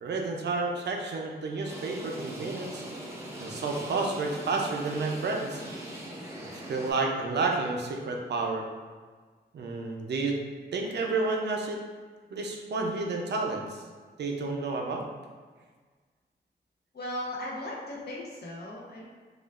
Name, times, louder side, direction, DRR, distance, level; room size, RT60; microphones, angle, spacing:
voice 1, 0.0-2.8 3.4-5.6 6.7-8.6 9.5-10.4 10.7-11.8 12.3-13.8 14.2-15.0, right 3 dB, 70° right, 1 dB, 0.5 m, -30 dB
sound 1, 1.6-6.9, right 1 dB, 15° right, 0.6 m, -41 dB
voice 2, 16.9-19.0, left 1 dB, 60° left, -4 dB, 0.8 m, -37 dB
4.9 x 2.4 x 2.4 m, 1.5 s
wide cardioid pair, 175°, 18 cm